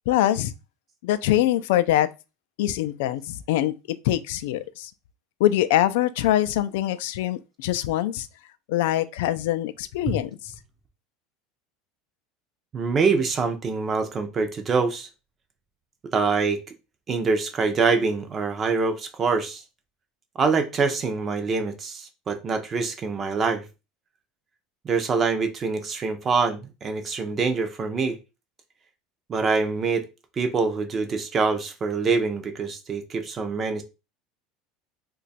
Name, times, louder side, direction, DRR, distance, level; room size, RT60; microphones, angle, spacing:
voice 1, 0.1-0.5 1.0-2.1 2.6-3.7 4.0-4.9 5.4-8.3 8.7-10.3, left 13 dB, 70° left, 0.3 m, -23 dB
voice 2, 12.7-15.1 16.1-16.6 17.1-19.6 20.4-23.7 24.8-28.2 29.3-30.0 30.4-33.8, right 4 dB, 20° right, 0.5 m, -25 dB
2.9 x 2.3 x 4.1 m
cardioid pair, 175°, 0 cm